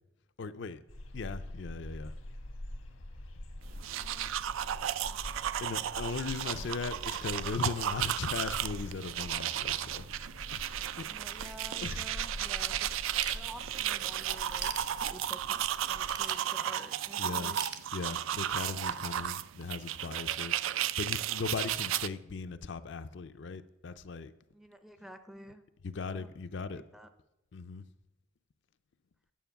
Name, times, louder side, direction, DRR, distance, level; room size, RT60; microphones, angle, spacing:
voice 1, 0.4-0.8 1.1-2.1 5.6-10.1 10.5-11.1 11.4-11.5 11.8-12.0 17.2-17.5 17.9-20.6 21.0-24.3 25.8-26.8 27.5-27.8, left 4 dB, 60° left, 0.4 m, -38 dB
sound 1, 0.9-16.4, left 1 dB, 80° left, 1.1 m, -45 dB
sound 2, 3.7-22.1, right 11 dB, 75° right, 0.3 m, -34 dB
voice 2, 4.0-4.3 6.4-6.7 11.0-13.0 13.3-17.6 24.5-25.6 25.9-26.3 26.6-27.1, equal, ahead, 0.4 m, -50 dB
Ratchet pawl / Tools, 13.2-13.9 14.3-15.5 16.0-17.0 17.5-18.5, right 7 dB, 55° right, 0.9 m, -41 dB
9.2 x 7.3 x 5.7 m
head